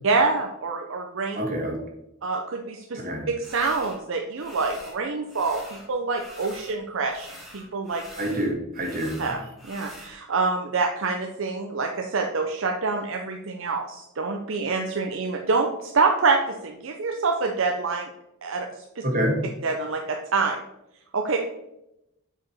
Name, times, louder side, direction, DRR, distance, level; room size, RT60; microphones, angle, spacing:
voice 1, 0.0-1.4 2.2-3.0 3.3-8.0 9.2-9.4 9.7-18.1 18.4-19.0 19.6-20.6 21.1-21.4, right 4 dB, 65° right, 3 dB, 0.7 m, -26 dB
voice 2, 1.3-1.8 2.9-3.2 8.2-9.2 19.0-19.4, equal, 40° right, 1 dB, 1.8 m, -26 dB
sound 1, 3.4-4.0 4.4-5.0 5.3-6.8 7.0-10.1, equal, ahead, 2.1 m, -45 dB
7.6 x 4.9 x 4.3 m, 0.86 s
head